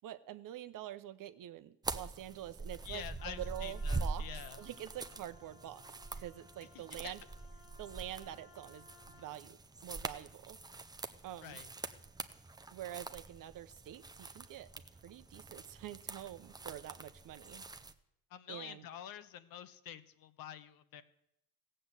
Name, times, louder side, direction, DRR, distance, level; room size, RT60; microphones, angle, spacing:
voice 1, 0.0-4.3 4.6-5.8 6.2-7.2 7.8-10.6 11.2-11.6 12.7-14.7 15.0-17.6 18.5-18.9, right 12 dB, 50° right, 12 dB, 0.9 m, -46 dB
sound 1, 1.8-17.9, right 3 dB, 10° right, 0.7 m, -44 dB
voice 2, 2.8-4.6 6.7-7.1 11.4-11.7 18.3-21.0, left 10 dB, 55° left, 12 dB, 1.1 m, -48 dB
Wind instrument woodwind instrument, 3.2-9.5, left 5 dB, 85° left, 2.8 m, -61 dB
15.5 x 7.8 x 8.1 m, 0.80 s
cardioid pair, 110°, 41 cm